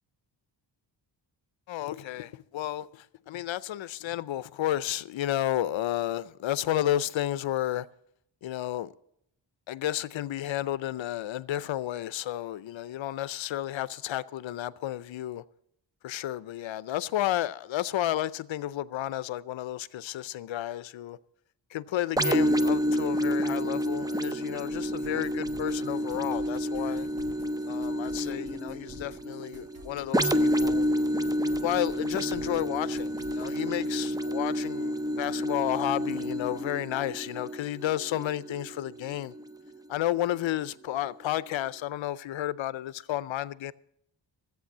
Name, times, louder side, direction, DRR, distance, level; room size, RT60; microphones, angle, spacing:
voice 1, 1.7-2.9 3.3-7.9 8.4-8.9 9.7-15.4 16.0-21.2 21.7-27.1 27.7-30.8 31.6-39.3 39.9-43.7, left 13 dB, 80° left, 0.6 m, -32 dB
sound 1, 22.2-39.7 40.2-40.4, equal, 10° right, 0.5 m, -29 dB
sound 2, 24.7-33.5, equal, 30° right, 2.6 m, -50 dB
14.0 x 8.3 x 7.2 m
wide cardioid pair, 100°, 45 cm